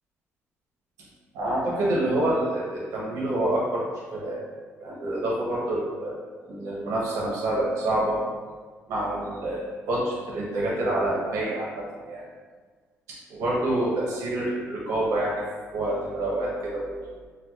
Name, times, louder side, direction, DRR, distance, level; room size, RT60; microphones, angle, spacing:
voice 1, 1.3-3.9 4.1-4.4 4.8-6.1 6.5-8.2 8.9-12.2 13.3-15.4 15.7-17.0, right 1 dB, 90° right, -5 dB, 0.7 m, -27 dB
4.4 x 2.2 x 2.2 m, 1.5 s
cardioid pair, 165°, 5 cm